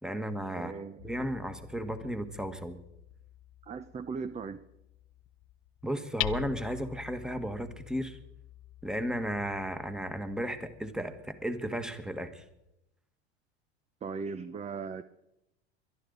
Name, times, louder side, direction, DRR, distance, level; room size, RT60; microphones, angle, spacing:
voice 1, 0.0-0.7 1.0-2.8 5.8-8.2 8.8-12.4, equal, ahead, 9 dB, 1.6 m, -34 dB
voice 2, 0.5-1.1 3.6-4.6 14.0-15.0, right 5 dB, 20° right, 12 dB, 0.7 m, -38 dB
Hammer, 1.0-12.7, left 17 dB, 55° left, 0.7 m, -45 dB
22.5 x 12.0 x 4.0 m, 0.85 s
hypercardioid pair, 90°, 32 cm